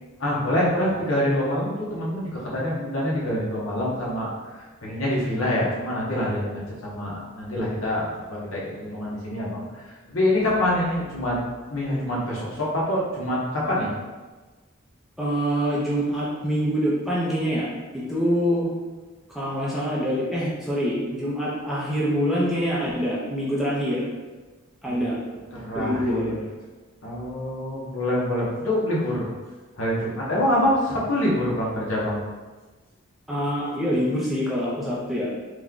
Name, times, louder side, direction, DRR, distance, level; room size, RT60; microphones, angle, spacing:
voice 1, 0.2-4.3 4.8-6.4 6.8-9.6 10.1-11.4 11.7-13.9 24.9-25.3 25.6-26.4 27.0-29.3 29.8-32.2, left 1 dB, 70° left, -5 dB, 0.9 m, -25 dB
voice 2, 15.2-18.7 19.3-24.0 24.8-25.2 25.7-26.3 33.3-35.3, equal, ahead, -7 dB, 0.5 m, -25 dB
3.1 x 2.2 x 3.7 m, 1.3 s
head